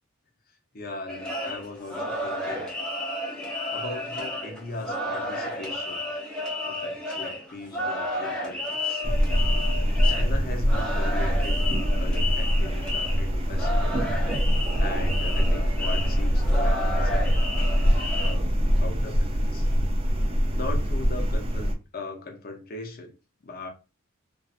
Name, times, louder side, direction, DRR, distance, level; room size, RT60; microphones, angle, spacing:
voice 1, 0.7-2.7 3.7-6.1 6.6-9.0 10.1-14.0 14.7-17.4 18.2-19.7 20.5-23.1 23.4-23.7, left 3 dB, 45° left, 0.6 m, -39 dB
sound 1, 1.1-18.3, left 1 dB, 5° left, 0.6 m, -32 dB
sound 2, 9.0-21.7, equal, 25° right, 0.4 m, -24 dB
2.4 x 2.4 x 2.4 m
head